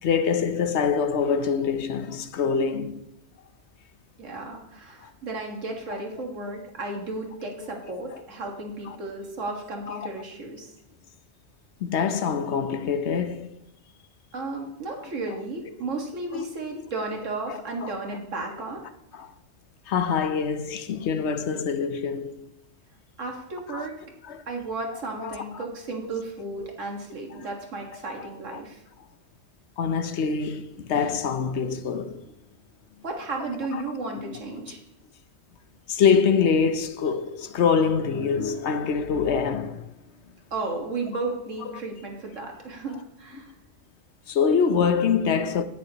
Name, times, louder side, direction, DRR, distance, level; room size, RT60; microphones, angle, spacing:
voice 1, 0.0-3.0 5.0-5.1 6.1-6.2 8.9-9.0 9.9-10.1 11.8-13.6 15.0-15.1 16.3-16.4 16.8-16.9 17.5-18.0 19.1-19.3 19.9-22.5 23.7-23.9 24.3-24.4 25.2-25.7 26.0-26.2 26.6-26.7 27.3-27.5 28.2-28.3 29.8-32.2 33.7-33.8 35.9-39.9 41.7-41.8 44.3-45.6, left 6 dB, 65° left, 1.0 m, -25 dB
voice 2, 4.2-10.7 14.3-18.8 23.2-24.0 24.5-28.8 33.0-34.8 40.5-43.5, right 3 dB, 80° right, 2.0 m, -34 dB
17.5 x 6.5 x 2.9 m
omnidirectional pair, 1.3 m